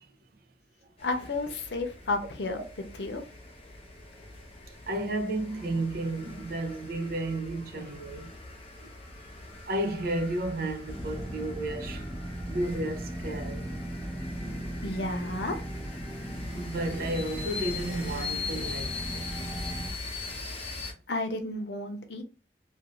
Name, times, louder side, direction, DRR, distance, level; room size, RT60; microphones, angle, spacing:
voice 1, 1.0-2.6 3.0-3.2 14.8-15.6 21.1-22.2, left 2 dB, 75° left, 0.7 m, -32 dB
sound 1, 1.0-20.9, left 3 dB, 35° left, 0.8 m, -42 dB
voice 2, 4.9-8.3 8.8-8.9 9.7-12.0 12.5-13.6 16.5-19.2, right 1 dB, 55° right, 0.6 m, -32 dB
sound 2, 10.9-19.9, right 1 dB, ahead, 0.5 m, -37 dB
2.8 x 2.6 x 3.0 m
head